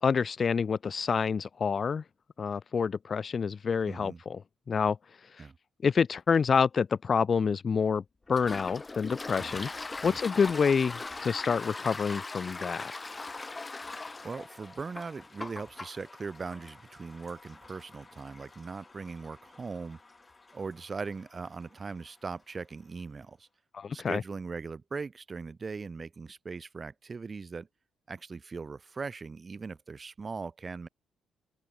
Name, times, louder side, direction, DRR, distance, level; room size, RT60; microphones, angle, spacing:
voice 1, 0.0-2.0 2.4-4.4 4.7-5.0 5.8-8.0 8.3-9.7 10.0-12.9 23.7-24.2, left 6 dB, 40° left, 1.8 m, -27 dB
voice 2, 3.9-4.2 5.4-5.6 9.4-9.6 10.0-10.2 14.2-20.0 20.5-23.5 23.9-27.7 28.1-30.9, right 4 dB, 35° right, 3.6 m, -40 dB
Toilet flush, 8.3-21.6, left 3 dB, 25° left, 3.5 m, -42 dB
open air
cardioid pair, 90°, 0 cm